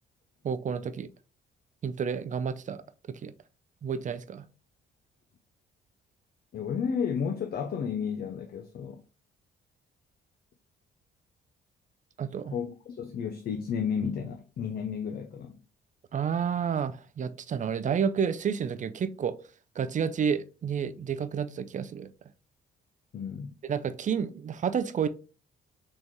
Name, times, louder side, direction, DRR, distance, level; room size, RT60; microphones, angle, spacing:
voice 1, 0.4-1.1 1.8-2.8 3.1-3.3 3.8-4.5 12.2-12.5 16.1-19.4 19.8-22.1 23.6-25.1, right 7 dB, 40° right, 0.4 m, -30 dB
voice 2, 6.5-9.0 12.5-15.6 23.1-23.6, left 7 dB, 50° left, 0.6 m, -32 dB
4.0 x 3.1 x 3.5 m
cardioid pair, 90°, 20 cm